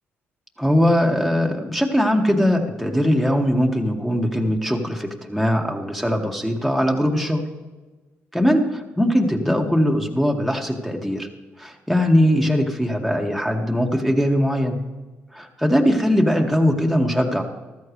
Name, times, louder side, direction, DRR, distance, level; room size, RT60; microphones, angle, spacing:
voice 1, 0.6-7.5 8.3-8.6 9.0-11.3 11.6-14.8 15.3-17.4, equal, ahead, 2 dB, 2.2 m, -20 dB
15.0 x 13.0 x 3.3 m, 1.2 s
hypercardioid pair, 50°, 6 cm